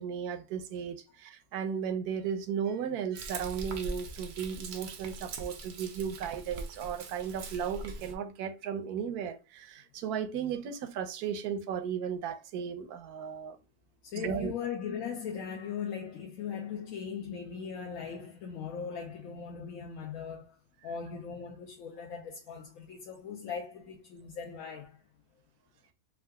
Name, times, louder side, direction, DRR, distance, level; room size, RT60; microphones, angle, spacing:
voice 1, 0.0-13.6 14.1-14.5, right 7 dB, 85° right, 1.1 m, -35 dB
Frying (food), 3.1-8.1, right 3 dB, 65° right, 0.6 m, -42 dB
voice 2, 14.0-20.6 20.8-25.0, left 7 dB, 70° left, 1.0 m, -39 dB
3.7 x 2.3 x 2.2 m
omnidirectional pair, 1.6 m